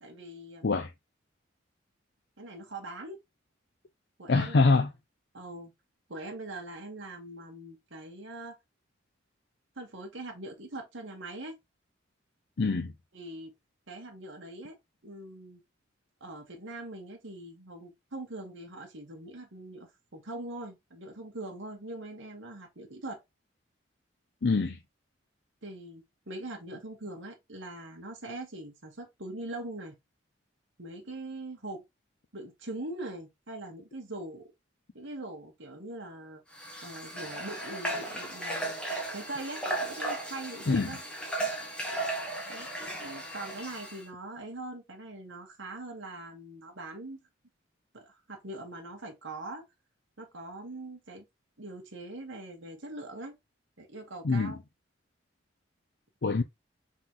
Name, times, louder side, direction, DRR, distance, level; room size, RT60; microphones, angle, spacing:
voice 1, 0.0-0.7 2.4-3.2 4.2-4.8 5.3-5.7 6.1-8.6 9.8-11.6 13.1-13.5 13.9-14.8 15.0-15.6 16.2-23.2 25.6-29.9 30.8-31.8 32.3-34.5 34.9-36.4 36.8-38.8 39.1-41.0 42.5-42.7 43.0-47.2 47.9-49.6 50.2-51.2 51.6-53.3 53.8-54.6, right 2 dB, 80° right, 1.4 m, -42 dB
voice 2, 4.3-4.9 12.6-12.9 24.4-24.8 40.7-41.0 54.2-54.6 56.2-56.4, left 3 dB, 60° left, 0.5 m, -25 dB
Water / Water tap faucet, 36.5-44.0, right 1 dB, 5° left, 1.3 m, -36 dB
4.0 x 3.7 x 3.0 m
head